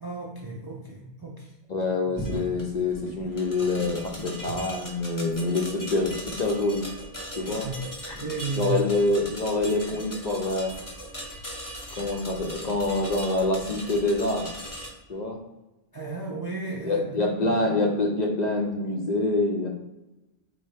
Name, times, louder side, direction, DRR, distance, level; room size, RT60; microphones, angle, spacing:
voice 1, 0.0-1.5 7.6-7.7 8.2-8.7 15.9-17.6, right 3 dB, 35° right, -2 dB, 0.4 m, -34 dB
voice 2, 1.7-6.8 7.4-7.7 8.0-8.2 8.6-10.7 12.0-14.5 15.1-15.4 16.8-19.7, left 2 dB, 50° left, 1 dB, 0.6 m, -26 dB
sound 1, 2.2-14.9, equal, 20° left, 0.8 m, -39 dB
4.3 x 2.6 x 3.2 m, 1.0 s
omnidirectional pair, 1.1 m